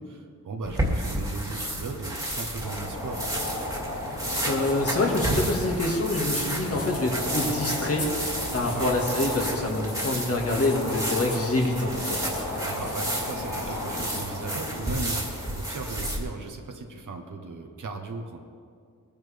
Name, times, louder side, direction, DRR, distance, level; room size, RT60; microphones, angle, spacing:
voice 1, 0.0-3.2 8.5-8.9 12.6-18.4, right 3 dB, 70° right, 3 dB, 1.3 m, -37 dB
sound 1, 0.6-16.2, right 1 dB, 10° right, 2.2 m, -32 dB
sound 2, 2.6-15.6, left 1 dB, 65° left, 2.7 m, -35 dB
sound 3, 4.0-13.9, left 2 dB, 85° left, 3.5 m, -42 dB
voice 2, 4.4-8.1 8.5-12.2, left 2 dB, 45° left, 0 dB, 2.0 m, -26 dB
21.5 x 10.5 x 3.5 m, 2.2 s
wide cardioid pair, 120°, 32 cm